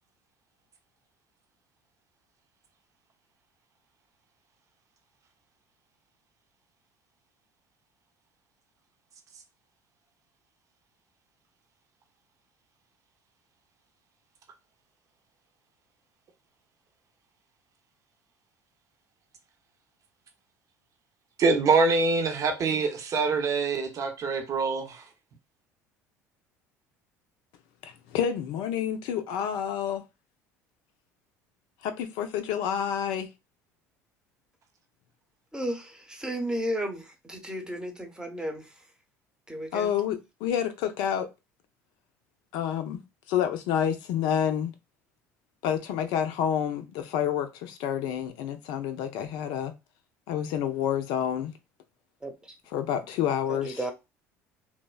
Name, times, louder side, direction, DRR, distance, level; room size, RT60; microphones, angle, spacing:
voice 1, 21.4-25.0, right 4 dB, 40° right, 0.7 m, -24 dB
voice 2, 27.8-30.0 31.8-33.3 39.7-41.3 42.5-43.0 43.3-44.7 45.6-49.7 50.3-51.5 52.7-53.8, left 9 dB, 65° left, 0.5 m, -29 dB
voice 3, 35.5-38.7 39.5-39.9 52.2-52.6 53.5-53.9, equal, 10° right, 0.9 m, -34 dB
3.2 x 2.1 x 2.2 m
hypercardioid pair, 65°, 8 cm